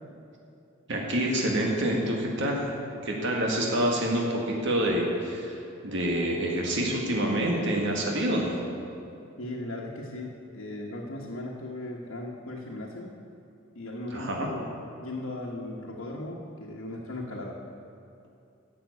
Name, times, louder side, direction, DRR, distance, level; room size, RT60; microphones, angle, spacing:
voice 1, 0.9-2.7 3.0-8.6 14.1-14.5, right 1 dB, 65° right, -1 dB, 1.8 m, -27 dB
voice 2, 9.4-13.2 13.7-17.6, left 1 dB, 85° left, -4 dB, 1.4 m, -37 dB
11.5 x 7.5 x 8.3 m, 2.6 s
head